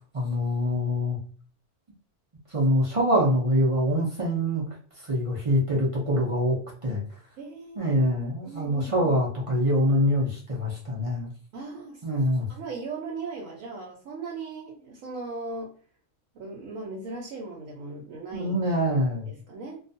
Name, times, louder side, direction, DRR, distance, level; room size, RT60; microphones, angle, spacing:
voice 1, 0.1-1.2 2.5-4.6 5.0-6.6 6.8-7.0 7.8-11.3 12.0-12.5 18.3-19.3, equal, 50° right, -4 dB, 0.4 m, -24 dB
voice 2, 7.4-8.1 8.4-9.1 11.5-12.0 12.5-15.7 16.3-18.5 19.3-19.8, right 3 dB, 75° right, -2 dB, 1.0 m, -38 dB
2.5 x 2.3 x 2.5 m, 0.43 s
omnidirectional pair, 1.4 m